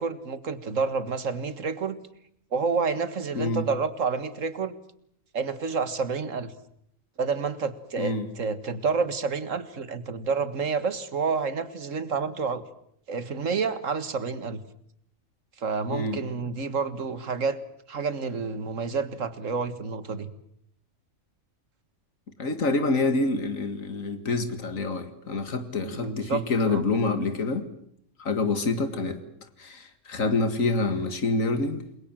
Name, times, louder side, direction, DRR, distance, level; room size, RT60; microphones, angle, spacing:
voice 1, 0.0-2.0 2.5-4.7 5.3-6.5 7.2-12.6 13.1-14.6 15.6-17.6 17.9-20.3 25.8-26.9, right 5 dB, 75° right, 13 dB, 2.0 m, -29 dB
voice 2, 3.3-3.7 8.0-8.3 15.9-16.2 22.4-27.7 28.2-29.2 29.6-31.8, left 3 dB, 90° left, 9 dB, 2.3 m, -27 dB
29.0 x 22.5 x 7.5 m, 0.70 s
omnidirectional pair, 1.3 m